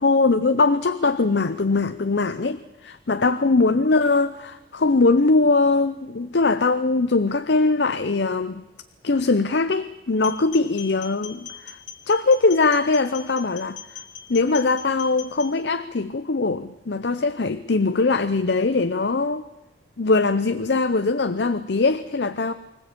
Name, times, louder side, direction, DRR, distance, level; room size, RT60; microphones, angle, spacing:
voice 1, 0.0-8.6 9.0-11.8 12.1-14.0 14.3-19.5 20.0-22.5, left 3 dB, 60° left, 11 dB, 0.7 m, -21 dB
sound 1, 10.2-15.5, left 8 dB, 75° left, 2.7 m, -40 dB
24.5 x 15.5 x 8.5 m, 1.1 s
head